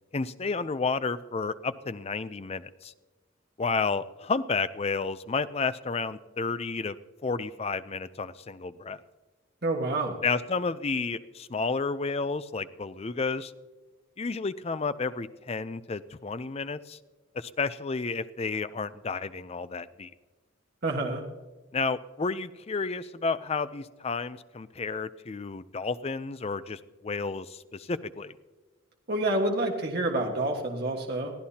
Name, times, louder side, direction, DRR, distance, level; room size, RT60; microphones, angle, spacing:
voice 1, 0.1-2.9 3.6-7.0 7.2-9.0 10.2-13.5 14.2-17.0 17.3-20.1 21.7-28.3, left 4 dB, 30° left, 14 dB, 0.5 m, -31 dB
voice 2, 9.6-10.2 20.8-21.2 29.1-31.3, right 2 dB, 50° right, 1 dB, 1.5 m, -28 dB
22.5 x 15.0 x 2.8 m, 1.2 s
head